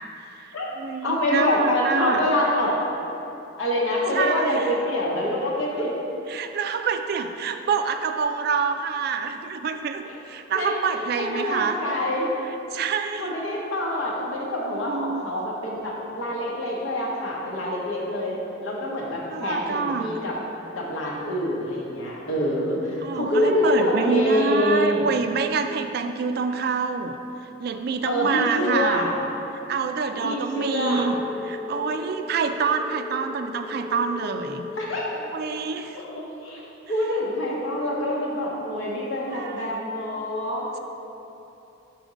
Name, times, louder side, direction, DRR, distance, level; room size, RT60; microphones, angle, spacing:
voice 1, 0.4-2.3 4.1-4.7 6.3-11.8 12.7-13.3 14.7-15.3 19.3-20.1 23.0-27.2 27.6-29.1 29.7-31.2 31.4-34.6 35.3-36.0 39.3-39.7, right 5 dB, 50° right, 7 dB, 0.3 m, -27 dB
voice 2, 1.0-2.7 3.6-5.9 10.5-12.3 13.2-20.4 20.7-25.1 28.0-29.2 30.2-31.1 34.8-35.2 35.9-40.8, left 1 dB, 85° left, -4 dB, 1.0 m, -26 dB
sound 1, 30.2-35.1, left 4 dB, 15° right, 0.7 m, -37 dB
5.1 x 4.2 x 5.0 m, 2.9 s
head